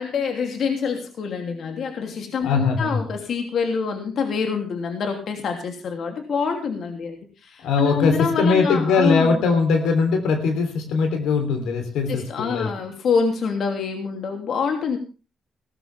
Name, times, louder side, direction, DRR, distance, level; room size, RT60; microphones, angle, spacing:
voice 1, 0.0-7.2 7.4-9.4 12.1-15.0, left 5 dB, 60° left, 4 dB, 2.9 m, -26 dB
voice 2, 2.4-3.0 7.6-12.7, left 4 dB, 85° left, 6 dB, 3.3 m, -21 dB
17.5 x 13.5 x 3.5 m, 0.32 s
cardioid pair, 90°, 0 cm